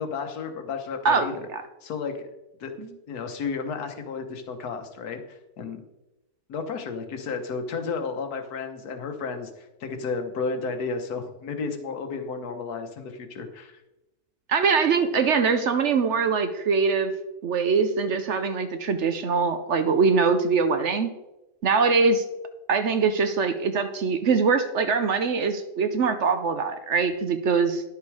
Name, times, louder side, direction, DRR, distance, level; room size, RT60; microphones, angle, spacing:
voice 1, 0.0-1.5 1.8-2.3 2.6-2.7 3.1-5.8 6.5-13.8, left 4 dB, 80° left, 6 dB, 1.6 m, -32 dB
voice 2, 14.5-17.1 17.4-21.1 21.6-22.2 22.7-27.8, right 5 dB, 60° right, 9 dB, 0.9 m, -23 dB
10.5 x 6.7 x 4.7 m, 0.97 s
omnidirectional pair, 1.6 m